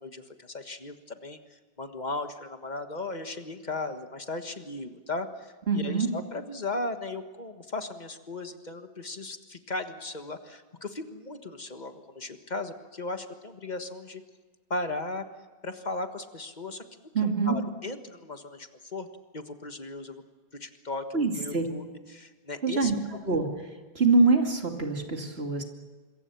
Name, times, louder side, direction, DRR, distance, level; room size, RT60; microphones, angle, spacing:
voice 1, 0.0-14.2 14.7-15.2 15.6-16.8 17.2-19.1 19.3-20.2 20.5-22.9 23.2-23.3, left 2 dB, 45° left, 7 dB, 1.7 m, -37 dB
voice 2, 5.7-6.1 17.1-17.6 21.1-21.6 22.6-22.9 23.3-23.5 23.9-25.6, right 4 dB, 75° right, 3 dB, 2.9 m, -24 dB
26.0 x 23.0 x 7.1 m, 1.3 s
omnidirectional pair, 1.1 m